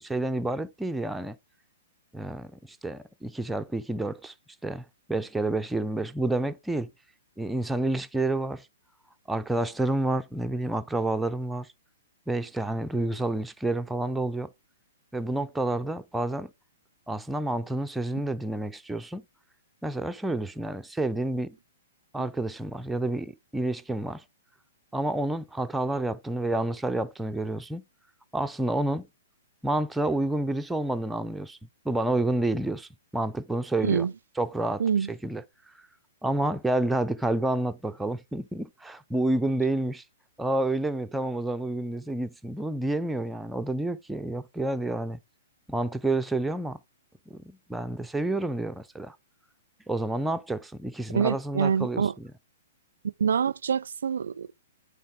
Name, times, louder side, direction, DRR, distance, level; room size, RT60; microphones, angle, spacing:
voice 1, 0.0-1.4 2.1-4.3 4.6-6.9 7.4-8.7 9.3-11.7 12.3-14.5 15.1-16.5 17.1-19.2 19.8-21.6 22.1-24.2 24.9-27.8 28.3-29.1 29.6-31.6 31.8-34.1 34.4-34.8 35.1-35.4 36.2-40.0 40.4-45.2 45.7-46.8 47.3-49.2 49.9-52.0, right 2 dB, 5° right, 0.5 m, -29 dB
voice 2, 34.8-35.1 51.1-52.1 53.0-54.5, right 7 dB, 75° right, 0.4 m, -26 dB
8.9 x 3.8 x 3.7 m
hypercardioid pair, 130°, 0 cm